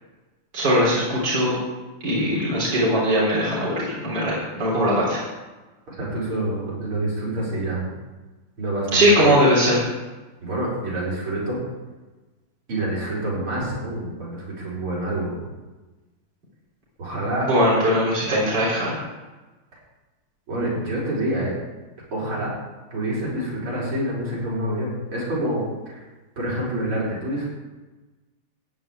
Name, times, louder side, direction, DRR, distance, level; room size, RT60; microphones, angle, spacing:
voice 1, 0.5-1.6 2.0-5.2 8.9-9.8 17.4-19.0, equal, 50° right, -6 dB, 4.3 m, -20 dB
voice 2, 5.9-7.9 8.6-9.3 10.4-11.6 12.7-15.4 17.0-17.5 20.5-21.5 22.1-22.5 22.9-26.0 26.4-27.5, right 1 dB, 75° right, -6 dB, 5.3 m, -27 dB
15.0 x 5.1 x 9.1 m, 1.2 s
omnidirectional pair, 2.4 m